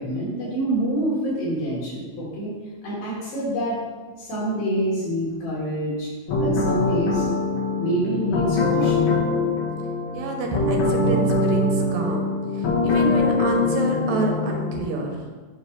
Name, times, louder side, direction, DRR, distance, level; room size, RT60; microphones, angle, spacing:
voice 1, 0.0-2.5 2.8-3.8 4.2-6.1 6.4-7.3 7.8-9.1, right 1 dB, 80° left, -7 dB, 4.2 m, -26 dB
sound 1, 6.3-14.8, left 3 dB, 60° left, 1.4 m, -23 dB
voice 2, 10.1-15.2, right 3 dB, 75° right, 1 dB, 2.4 m, -28 dB
8.4 x 2.8 x 5.7 m, 1.4 s
omnidirectional pair, 4.1 m